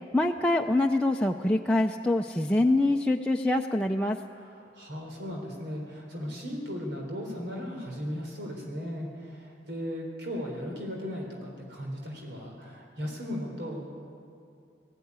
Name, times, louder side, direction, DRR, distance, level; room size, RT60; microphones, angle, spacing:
voice 1, 0.1-4.2, left 2 dB, 5° left, 1 dB, 0.5 m, -25 dB
voice 2, 4.3-13.9, equal, 90° right, 0 dB, 3.7 m, -37 dB
20.0 x 15.5 x 9.6 m, 2.5 s
head